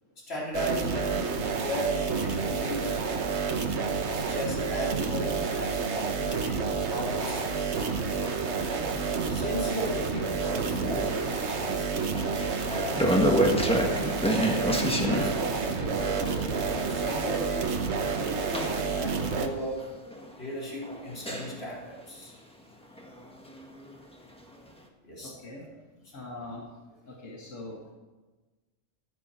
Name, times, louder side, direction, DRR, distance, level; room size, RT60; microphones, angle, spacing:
voice 1, 0.2-3.4 4.1-7.8 9.3-12.2 12.7-17.8 18.2-20.0 20.4-22.4 22.9-23.3 24.5-24.6 25.0-26.1 27.7-27.8, equal, 55° left, -5 dB, 3.7 m, -37 dB
sound 1, 0.5-19.5, right 5 dB, 65° right, 1.3 m, -29 dB
sound 2, 7.2-21.8 23.0-24.1 24.5-24.6, equal, 5° left, 1.4 m, -32 dB
voice 2, 25.2-25.7 26.1-26.7 27.1-27.8, left 2 dB, 90° left, -2 dB, 2.1 m, -42 dB
15.0 x 10.5 x 4.4 m, 1.2 s
omnidirectional pair, 1.3 m